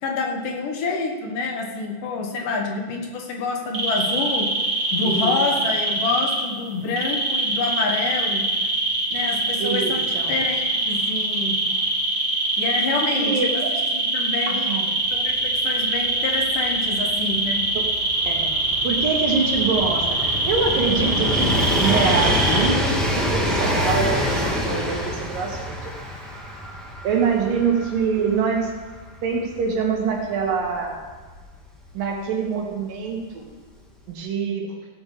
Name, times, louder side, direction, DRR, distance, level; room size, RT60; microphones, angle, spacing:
voice 1, 0.0-4.5 4.9-8.4 9.1-11.6 12.6-13.3 13.9-14.8 15.1-17.7, left 4 dB, 75° left, 1 dB, 3.1 m, -27 dB
sound 1, 3.7-6.4 7.0-22.7, right 2 dB, 30° right, 2.3 m, -23 dB
voice 2, 5.0-5.6 9.6-10.4 13.2-13.7 14.5-14.9 18.3-18.6 18.8-21.5 21.8-25.9 27.0-28.7 29.2-31.0 32.0-33.5 34.1-34.7, right 5 dB, 80° right, 0 dB, 3.5 m, -25 dB
Train, 15.2-15.3 15.5-32.1 33.1-33.2, equal, ahead, 1.5 m, -27 dB
16.5 x 8.4 x 5.0 m, 1.4 s
omnidirectional pair, 3.9 m